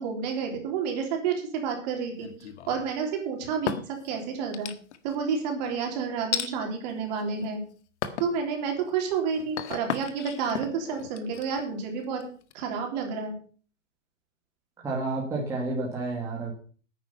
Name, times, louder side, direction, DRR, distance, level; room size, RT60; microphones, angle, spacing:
voice 1, 0.0-4.7 5.0-7.6 8.2-12.2 12.5-13.3, right 6 dB, 35° right, 3 dB, 3.6 m, -30 dB
sound 1, 2.2-2.9 3.4-4.1 4.5-5.2 6.3-6.5 7.2-7.6 8.0-8.4 8.8-12.5, left 8 dB, 65° left, 1.6 m, -34 dB
voice 2, 14.8-16.5, right 2 dB, 10° right, -3 dB, 2.0 m, -30 dB
9.9 x 9.5 x 6.8 m, 0.42 s
hypercardioid pair, 170°, 37 cm